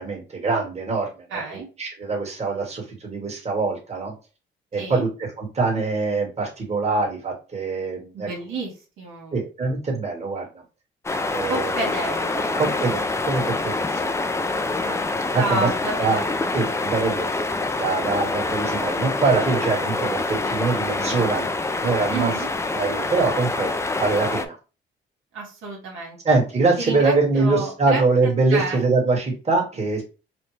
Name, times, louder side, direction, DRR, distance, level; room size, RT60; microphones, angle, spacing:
voice 1, 0.0-4.1 4.7-8.3 9.3-10.5 11.3-11.7 12.5-14.1 15.3-15.7 16.0-16.2 16.5-17.3 17.5-21.5 21.8-22.3 22.7-23.7 24.0-24.6 26.2-30.0, right 3 dB, 35° right, -1 dB, 1.5 m, -23 dB
voice 2, 1.3-1.7 4.8-5.0 8.1-9.4 11.5-12.8 14.8-16.4 22.1-22.5 25.3-26.2 26.8-28.8, right 3 dB, 85° right, -2 dB, 1.5 m, -30 dB
sound 1, 11.0-24.4, left 3 dB, 15° left, 0.4 m, -26 dB
4.2 x 2.2 x 3.2 m, 0.32 s
cardioid pair, 90°, 20 cm